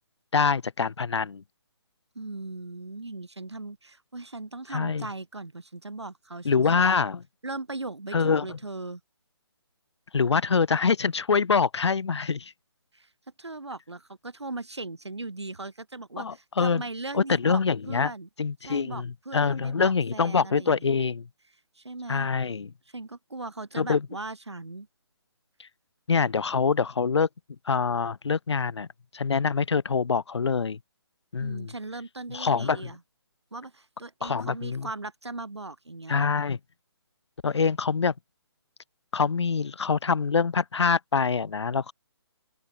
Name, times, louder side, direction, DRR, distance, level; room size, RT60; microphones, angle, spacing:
voice 1, 0.3-1.4 4.7-5.1 6.4-7.2 8.1-8.6 10.1-12.5 16.2-16.8 17.1-18.1 18.4-21.3 22.1-22.7 23.8-24.1 25.6-25.7 26.1-27.3 27.7-28.9 29.1-30.8 31.3-31.7 32.3-32.9 34.2-34.9 36.1-36.6 37.4-38.1 39.1-41.9, left 5 dB, 90° left, 0.4 m, -25 dB
voice 2, 2.1-6.8 7.4-9.0 12.9-13.1 13.4-17.6 17.9-18.3 18.6-20.9 21.7-22.3 22.9-24.9 31.4-33.0 33.5-36.5, right 2 dB, 85° right, 4.2 m, -38 dB
open air
figure-of-eight pair, 145°, 14 cm